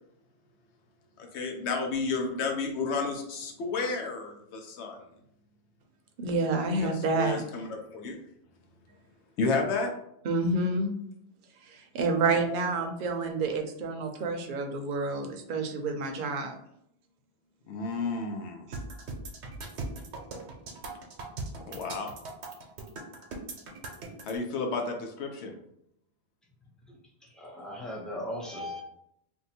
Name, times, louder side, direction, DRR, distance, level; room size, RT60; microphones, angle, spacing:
voice 1, 1.2-5.0 6.8-8.2 9.4-9.9 12.3-12.4 17.7-18.6 21.6-22.1 24.3-25.6, left 4 dB, 85° left, 3 dB, 0.9 m, -32 dB
voice 2, 6.2-7.4 10.2-10.9 11.7-16.5, right 3 dB, 60° right, 4 dB, 0.7 m, -29 dB
sound 1, 18.7-24.3, right 3 dB, 85° right, 1.0 m, -39 dB
voice 3, 26.9-28.8, left 1 dB, ahead, -2 dB, 0.4 m, -38 dB
2.7 x 2.2 x 4.1 m, 0.75 s
omnidirectional pair, 1.1 m